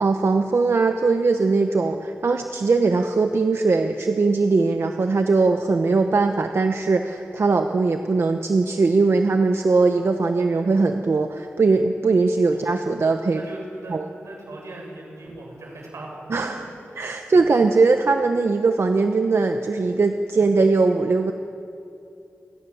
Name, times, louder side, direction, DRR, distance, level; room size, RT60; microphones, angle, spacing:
voice 1, 0.0-13.4 13.9-14.1 16.3-16.5 17.0-21.3, right 3 dB, 60° right, 6 dB, 1.0 m, -20 dB
voice 2, 13.3-16.2 20.3-20.5, right 1 dB, 85° right, -1 dB, 7.1 m, -39 dB
27.5 x 20.5 x 7.2 m, 2.7 s
wide cardioid pair, 95°, 5 cm